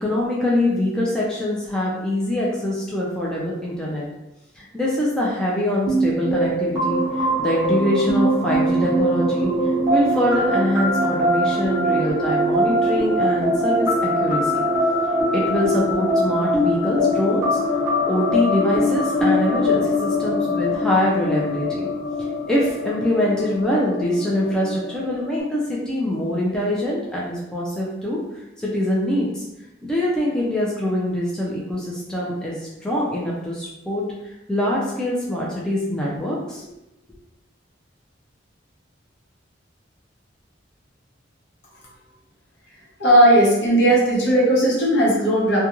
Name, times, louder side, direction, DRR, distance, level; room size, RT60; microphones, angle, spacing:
voice 1, 0.0-4.1 4.6-9.5 9.9-14.6 15.3-17.6 18.1-21.9 22.5-28.2 28.6-29.4 29.8-34.0 34.5-36.7, left 1 dB, 5° left, -5 dB, 0.4 m, -24 dB
sound 1, 5.9-25.4, equal, 15° right, 0.9 m, -22 dB
voice 2, 43.0-45.6, right 1 dB, 65° left, -5 dB, 0.9 m, -16 dB
2.4 x 2.2 x 2.9 m, 0.90 s
head